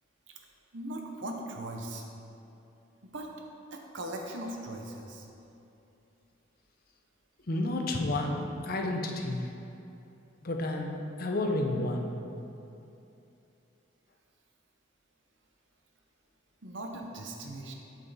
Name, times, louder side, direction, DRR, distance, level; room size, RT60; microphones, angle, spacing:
voice 1, 0.7-2.0 3.0-3.3 3.7-5.3 16.6-17.7, right 1 dB, 70° right, 2 dB, 0.9 m, -39 dB
voice 2, 7.5-9.5 10.4-12.1, left 2 dB, 50° left, 2 dB, 0.7 m, -31 dB
8.6 x 5.5 x 4.1 m, 2.8 s
head